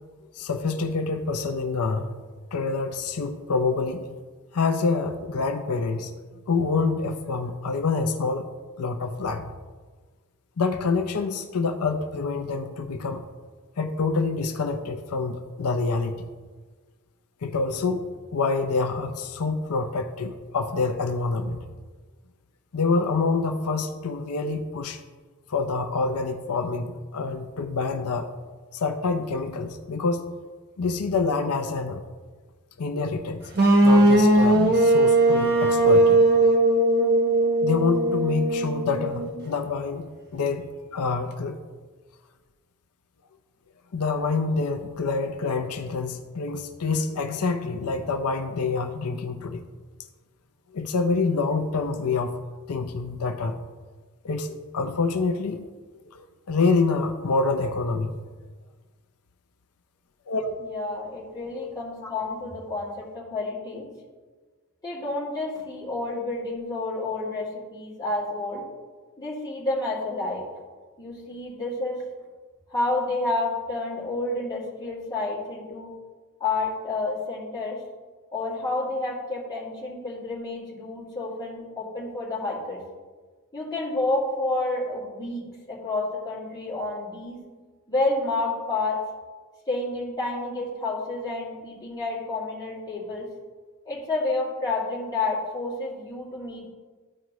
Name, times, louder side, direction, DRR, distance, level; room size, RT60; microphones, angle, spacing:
voice 1, 0.4-2.1 2.5-4.1 4.5-6.1 6.5-8.5 8.8-9.5 10.6-13.2 13.8-16.2 17.4-18.1 18.3-21.6 22.7-25.0 25.5-28.3 28.7-30.3 30.8-32.0 32.8-33.5 33.8-36.2 37.6-41.6 43.9-49.6 50.7-52.3 52.7-53.6 54.2-55.7 56.1-58.2 60.3-60.6, left 4 dB, 75° left, 6 dB, 0.6 m, -26 dB
sound 1, 33.6-39.4, right 1 dB, 45° right, 1.1 m, -19 dB
voice 2, 60.6-63.9 64.8-68.6 69.2-70.4 71.0-72.0 72.7-75.9 76.4-77.8 78.3-82.8 83.5-87.4 87.9-89.0 89.7-93.3 93.9-96.7, left 2 dB, 20° left, -7 dB, 2.3 m, -29 dB
13.0 x 4.8 x 3.1 m, 1.4 s
head